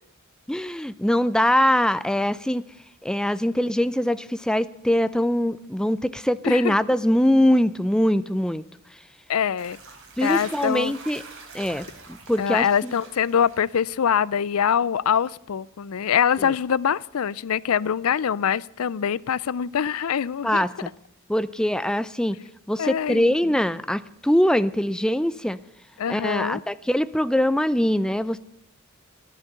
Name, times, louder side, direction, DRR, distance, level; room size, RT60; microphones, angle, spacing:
voice 1, 0.5-2.6 3.0-8.6 10.2-11.2 11.5-13.0 16.4-16.5 20.4-20.9 21.3-22.4 22.7-25.6 26.1-28.4, left 1 dB, 5° left, 0.5 m, -22 dB
voice 2, 6.4-6.8 9.3-9.8 10.2-10.9 12.4-20.7 22.8-23.6 26.0-26.6, left 8 dB, 90° left, 0.5 m, -24 dB
sound 1, 9.6-13.9, right 4 dB, 60° right, 4.3 m, -44 dB
14.5 x 11.0 x 8.1 m
head